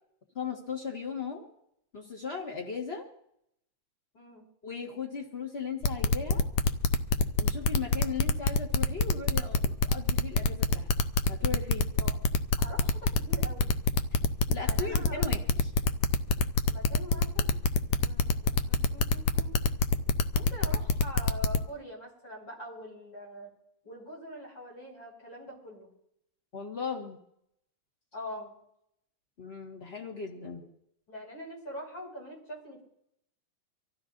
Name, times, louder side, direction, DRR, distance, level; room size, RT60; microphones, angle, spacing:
voice 1, 0.3-1.5 1.9-3.1 4.6-6.4 7.4-10.9 11.3-11.9 14.5-15.4 26.5-27.2 29.4-30.6, left 5 dB, 65° left, 0 dB, 0.6 m, -37 dB
voice 2, 4.1-4.5 12.0-12.2 12.6-13.8 14.6-15.2 16.7-17.5 17.9-19.5 20.3-23.5 23.8-25.9 28.1-28.6 31.1-32.8, equal, 30° left, -3 dB, 6.4 m, -43 dB
sound 1, 5.8-21.6, left 4 dB, 90° left, 1.5 m, -25 dB
25.5 x 14.5 x 2.6 m, 0.76 s
omnidirectional pair, 4.0 m